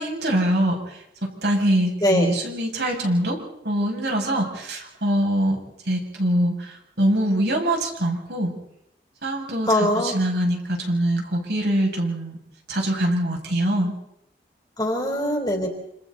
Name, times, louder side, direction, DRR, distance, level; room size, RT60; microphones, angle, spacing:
voice 1, 0.0-3.4 3.6-5.6 5.8-8.5 9.2-12.4 12.7-13.9, right 1 dB, 75° right, 0 dB, 6.9 m, -23 dB
voice 2, 2.0-2.4 9.7-10.2 14.8-15.7, left 1 dB, 20° left, 2 dB, 3.7 m, -22 dB
28.0 x 28.0 x 4.1 m, 0.79 s
head